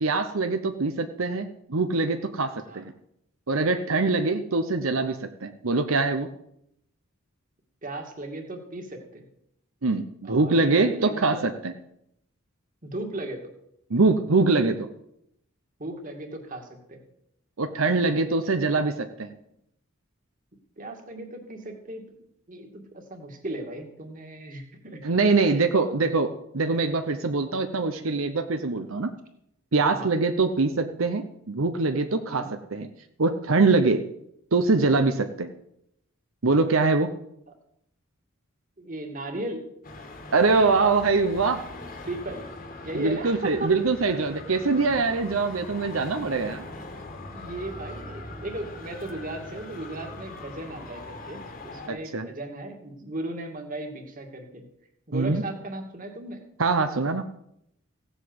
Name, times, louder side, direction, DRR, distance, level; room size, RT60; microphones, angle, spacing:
voice 1, 0.0-2.9 3.5-6.3 9.8-11.7 13.9-14.9 17.6-19.3 25.0-29.1 29.7-32.9 33.2-34.1 34.5-35.5 36.4-37.1 40.3-41.6 42.9-46.6 51.9-52.3 55.1-55.4 56.6-57.3, right 3 dB, 80° right, 7 dB, 0.9 m, -23 dB
voice 2, 7.8-9.2 10.2-11.4 12.8-13.4 15.8-17.0 18.0-18.8 20.8-22.0 22.5-25.4 27.5-27.6 29.9-30.1 32.3-32.5 38.8-39.6 42.0-43.7 46.0-46.1 46.3-46.5 46.8-54.6 55.1-56.4, right 1 dB, 40° right, 3 dB, 2.3 m, -37 dB
Traffic noise roadway noise, 39.8-51.9, left 2 dB, 45° left, 1.8 m, -41 dB
16.0 x 8.1 x 8.0 m, 0.78 s
head